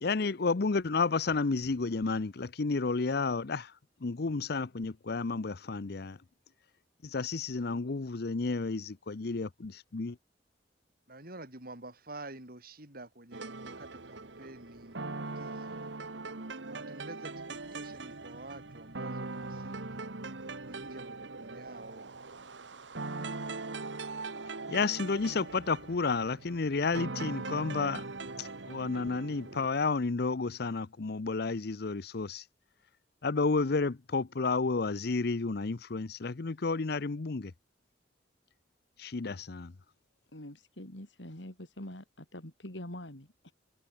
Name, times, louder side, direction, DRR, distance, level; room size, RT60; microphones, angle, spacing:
voice 1, 0.0-3.7 4.0-6.2 7.0-10.2 24.7-28.1 28.4-32.4 33.2-37.5 39.0-39.7, left 4 dB, 60° left, 0.7 m, -31 dB
voice 2, 11.1-15.9 16.7-20.1 20.7-22.0, right 2 dB, 55° right, 7.9 m, -49 dB
sound 1, 13.3-29.7, right 3 dB, 90° right, 1.7 m, -41 dB
voice 3, 40.3-43.5, left 1 dB, 90° left, 4.5 m, -45 dB
head